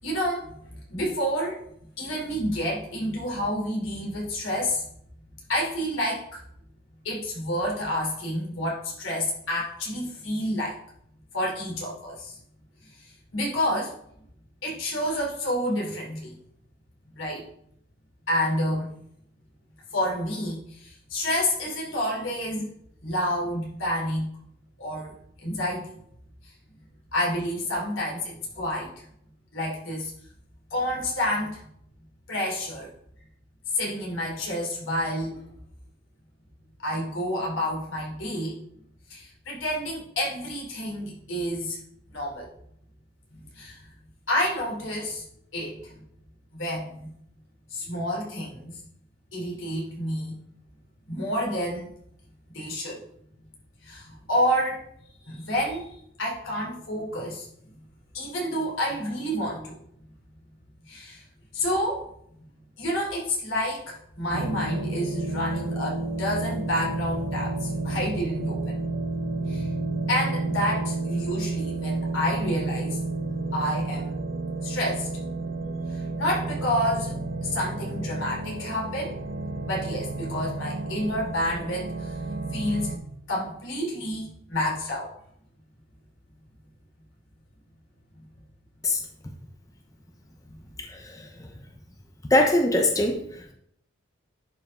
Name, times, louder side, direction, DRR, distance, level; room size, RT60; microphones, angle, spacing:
voice 1, 0.0-0.5 0.9-1.6 2.0-4.8 5.5-6.4 7.0-10.8 11.3-12.4 12.9-13.9 14.6-16.3 17.2-17.5 18.3-18.9 19.9-22.7 23.0-24.3 24.8-25.1 25.4-25.9 27.1-29.1 29.5-30.1 30.7-31.6 32.3-32.9 33.7-35.4 36.8-38.6 39.1-41.8 42.1-42.5 43.3-43.9 44.3-45.2 45.5-46.0 46.5-47.1 47.7-48.8 49.3-50.3 51.1-51.9 52.5-53.0 53.8-54.8 55.2-57.7 58.1-59.8 60.9-61.2 61.5-62.1 62.8-68.8 69.5-69.8 70.1-73.0 73.5-74.2 74.6-75.1 75.9-79.2 79.6-82.2 82.5-82.9 83.3-85.1 90.5-90.6, equal, 85° left, -2 dB, 3.2 m, -29 dB
sound 1, 64.3-83.0, right 3 dB, 80° right, 0.9 m, -31 dB
voice 2, 90.8-91.5 92.3-93.5, left 1 dB, 15° left, 3 dB, 0.7 m, -23 dB
10.5 x 5.3 x 3.6 m, 0.71 s
head